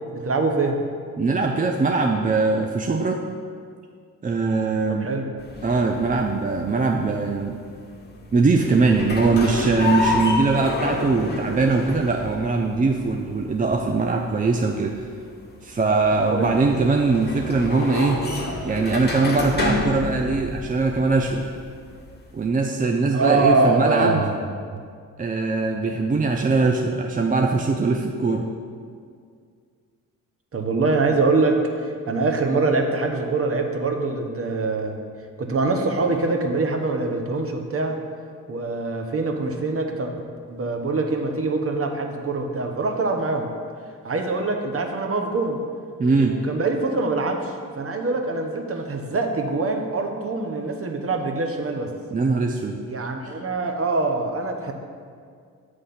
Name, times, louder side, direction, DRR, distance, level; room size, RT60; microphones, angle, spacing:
voice 1, 0.1-0.8 4.9-5.3 16.3-16.5 23.1-24.4 24.7-24.8 30.5-35.0 35.4-38.0 38.5-40.1 40.5-43.5 44.0-45.6 46.2-51.9 52.8-54.7, right 3 dB, 40° right, 3 dB, 0.9 m, -24 dB
voice 2, 1.2-3.2 4.2-5.1 5.6-7.6 8.3-15.0 15.6-18.2 18.6-21.5 22.3-24.2 25.2-28.5 46.0-46.3 52.1-52.8, right 3 dB, 25° right, 2 dB, 0.4 m, -21 dB
sound 1, 5.4-22.5, left 2 dB, 30° left, 1.2 m, -30 dB
7.7 x 3.2 x 5.7 m, 2.2 s
supercardioid pair, 55°, 36 cm